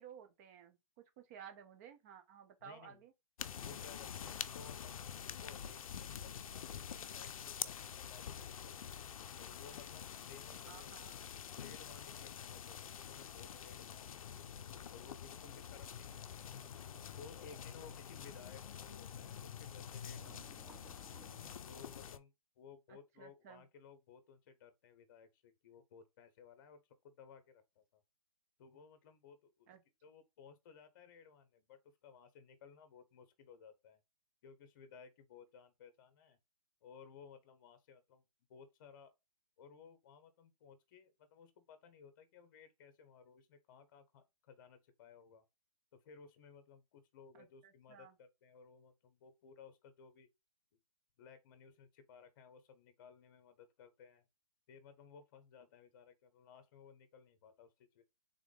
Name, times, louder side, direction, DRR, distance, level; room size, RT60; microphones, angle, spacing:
voice 1, 0.0-3.1 10.7-11.2 22.9-23.7 29.7-29.8 47.3-48.2, right 8 dB, 25° right, 0.8 m, -56 dB
voice 2, 2.6-3.0 3.6-5.0 5.2-11.2 11.5-14.6 14.9-16.7 17.2-21.0 21.7-28.0 28.6-29.7 30.0-34.0 34.4-36.4 36.8-38.2 38.5-39.1 39.6-45.4 46.0-50.3 51.2-54.2 54.7-58.0, left 6 dB, 35° left, 0.8 m, -59 dB
sound 1, 3.4-22.2, left 8 dB, 65° left, 0.5 m, -47 dB
sound 2, 10.2-11.6 13.7-18.8 19.2-19.4 20.1-21.7, right 2 dB, 10° right, 1.1 m, -65 dB
3.6 x 3.6 x 3.7 m
hypercardioid pair, 155°, 19 cm